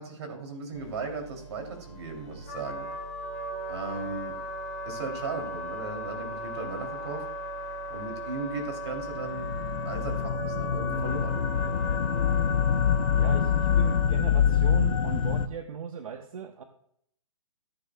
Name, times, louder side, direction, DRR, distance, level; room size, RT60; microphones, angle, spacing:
voice 1, 0.0-2.9 3.7-4.3 4.8-7.2 7.9-9.5 9.8-11.4, right 3 dB, 50° right, 3 dB, 2.9 m, -36 dB
sound 1, 0.7-10.2, right 6 dB, 5° left, 3.8 m, -48 dB
Wind instrument woodwind instrument, 2.4-14.0, equal, 30° left, 2.4 m, -37 dB
sound 2, 9.0-15.5, left 8 dB, 65° left, 0.7 m, -25 dB
voice 2, 13.1-16.6, right 6 dB, 75° right, 6 dB, 0.9 m, -37 dB
14.5 x 7.9 x 2.3 m, 0.71 s
hypercardioid pair, 165°, 18 cm